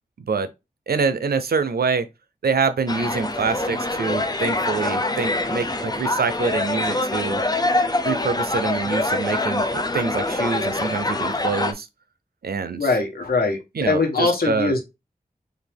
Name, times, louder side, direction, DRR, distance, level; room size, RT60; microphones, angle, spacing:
voice 1, 0.9-2.1 2.4-7.4 8.0-11.9 12.4-12.9 13.7-14.7, right 5 dB, 90° right, 0.5 m, -25 dB
sound 1, 2.9-11.7, left 2 dB, 25° left, 0.6 m, -24 dB
voice 2, 12.8-13.6 13.9-14.8, left 3 dB, 85° left, 1.2 m, -21 dB
4.0 x 2.7 x 3.4 m
wide cardioid pair, 60°, 15 cm